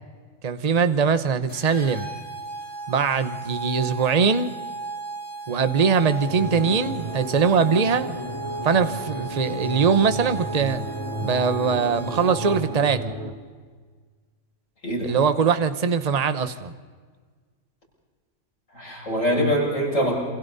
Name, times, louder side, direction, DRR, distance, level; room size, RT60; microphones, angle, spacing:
voice 1, 0.4-2.1 2.9-4.6 5.5-8.2 8.6-10.8 11.2-13.0 15.0-16.7, right 5 dB, 35° right, 11 dB, 1.0 m, -22 dB
sound 1, 1.5-12.9, right 3 dB, 25° left, 8.2 m, -36 dB
sound 2, 6.2-13.3, right 1 dB, 55° right, 3.0 m, -33 dB
voice 2, 14.8-15.2 18.8-20.3, equal, 85° left, -3 dB, 7.3 m, -24 dB
28.0 x 26.5 x 4.1 m, 1.6 s
omnidirectional pair, 1.3 m